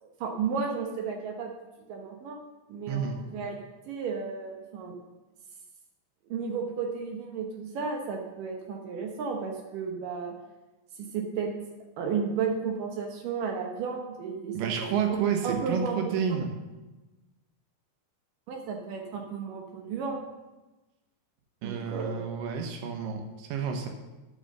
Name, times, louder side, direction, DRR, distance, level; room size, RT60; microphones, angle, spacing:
voice 1, 0.0-1.5 1.9-2.4 2.7-3.6 3.9-4.9 6.3-10.3 11.0-11.5 12.0-14.9 15.4-16.4 18.5-20.2 21.6-22.4, right 5 dB, 70° right, 2 dB, 2.1 m, -33 dB
voice 2, 2.9-3.2 14.5-16.6 21.6-23.9, right 7 dB, 90° right, 4 dB, 1.9 m, -30 dB
9.3 x 6.9 x 6.6 m, 1.1 s
omnidirectional pair, 5.1 m